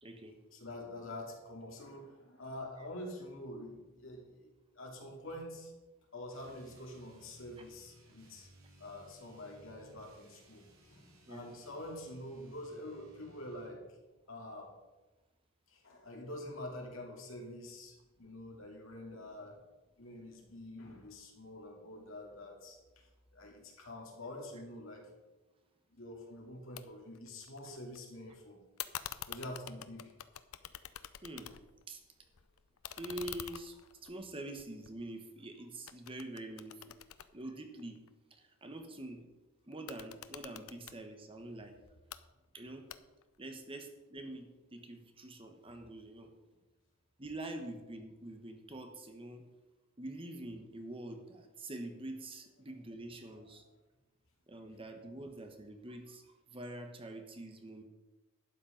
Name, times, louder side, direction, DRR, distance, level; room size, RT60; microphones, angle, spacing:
voice 1, 0.0-0.4 2.8-2.9 11.3-11.5 31.2-31.5 31.9-32.0 33.0-36.9 37.3-38.0 38.3-39.2 39.7-41.8 42.5-42.9 43.4-46.3 47.2-49.4 50.0-53.6 54.5-57.8, right 1 dB, 25° right, 5 dB, 1.2 m, -45 dB
voice 2, 0.5-4.4 4.7-5.7 6.1-8.5 8.8-10.6 10.9-13.8 14.3-14.7 15.7-19.6 20.0-22.8 23.3-25.1 25.9-28.6 29.3-30.1, left 1 dB, 70° left, 0 dB, 2.8 m, -46 dB
sound 1, 6.3-13.8, equal, 75° right, 3.3 m, -62 dB
sound 2, 26.8-26.9 27.1-28.0 28.8-31.8 32.2-35.4 35.9-38.1 39.7-41.0 41.9-42.2 42.9-43.4, left 10 dB, 90° left, 0.6 m, -47 dB
12.0 x 8.4 x 5.3 m, 1.1 s
head